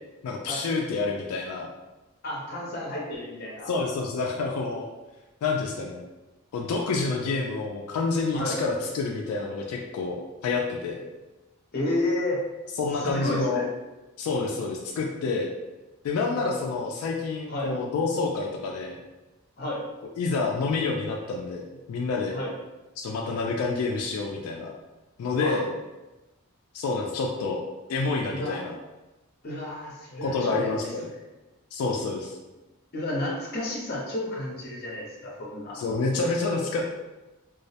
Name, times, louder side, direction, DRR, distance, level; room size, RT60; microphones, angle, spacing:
voice 1, 0.2-1.7 3.7-4.9 5.4-6.1 6.5-10.2 10.4-11.0 12.8-13.6 14.2-15.5 16.0-19.0 20.2-22.4 23.0-24.7 25.2-25.7 26.7-27.6 27.9-28.8 30.2-31.1 31.7-32.4 35.7-36.8, left 3 dB, 85° left, 4 dB, 0.3 m, -28 dB
voice 2, 2.2-3.7 8.3-8.6 11.7-12.4 13.0-13.7 17.5-17.7 19.6-19.8 22.3-22.5 25.4-25.6 28.3-28.6 29.4-30.9 32.9-35.8, left 1 dB, 45° left, -3 dB, 0.6 m, -31 dB
2.3 x 2.0 x 2.7 m, 1.1 s
head